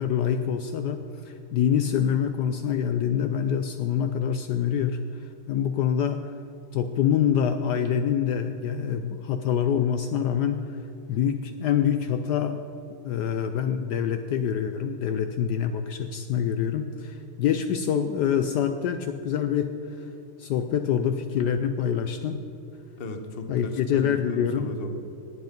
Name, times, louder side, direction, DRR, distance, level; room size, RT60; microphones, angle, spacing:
voice 1, 0.0-6.3 6.7-10.8 11.1-12.6 13.0-20.1 20.4-22.4 23.5-24.7, left 8 dB, 80° left, 8 dB, 0.9 m, -26 dB
voice 2, 23.0-24.9, left 2 dB, 35° left, 5 dB, 1.0 m, -36 dB
19.5 x 7.9 x 5.3 m, 2.9 s
omnidirectional pair, 2.4 m